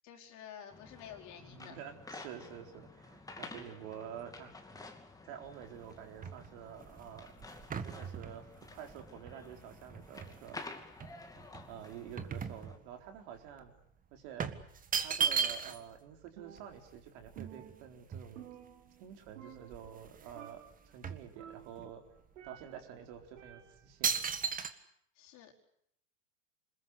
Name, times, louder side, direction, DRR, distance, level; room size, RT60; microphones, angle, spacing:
voice 1, 0.0-1.8 25.1-25.5, left 9 dB, 45° left, 1 dB, 4.7 m, -50 dB
sound 1, 0.7-12.8, left 3 dB, 10° left, 2.7 m, -51 dB
voice 2, 1.4-4.5 5.2-7.3 7.8-10.6 11.7-13.7 14.1-14.5 15.0-18.5 19.0-22.0 22.4-24.2, right 9 dB, 55° right, 5 dB, 4.3 m, -49 dB
sound 2, 5.5-10.6 11.0-13.2 13.5-13.7 14.4-16.0 16.3-16.4 16.6-18.7 19.3-19.4 19.6-20.4 20.7-21.9 22.5-22.6 23.3-23.5 24.0-24.7, right 6 dB, 20° right, 1.7 m, -37 dB
Percussion, 16.4-17.0 17.4-19.1 19.4-20.1 20.4-20.9 21.4-22.9 23.4-24.0, right 11 dB, 70° right, 3.1 m, -53 dB
26.0 x 21.0 x 8.2 m, 0.71 s
hypercardioid pair, 105°, 40 cm